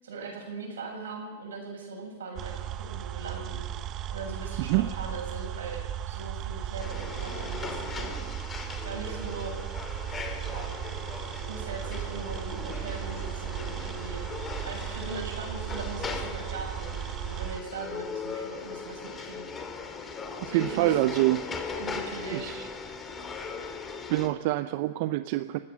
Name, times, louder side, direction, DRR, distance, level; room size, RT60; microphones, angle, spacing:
voice 1, 0.0-3.6 4.1-8.1 8.8-9.6 10.5-10.7 11.5-17.0 17.2-19.5 20.4-21.0 21.7-22.5, right 4 dB, 90° right, 1 dB, 7.1 m, -40 dB
sound 1, 2.4-17.6, right 11 dB, 35° right, 1.1 m, -36 dB
sound 2, 6.8-24.3, left 4 dB, 20° left, 2.7 m, -39 dB
voice 2, 20.4-21.5 22.3-22.7 24.1-25.6, right 16 dB, 55° right, 12 dB, 0.7 m, -26 dB
29.0 x 16.0 x 6.3 m, 1.4 s
hypercardioid pair, 120°, 0 cm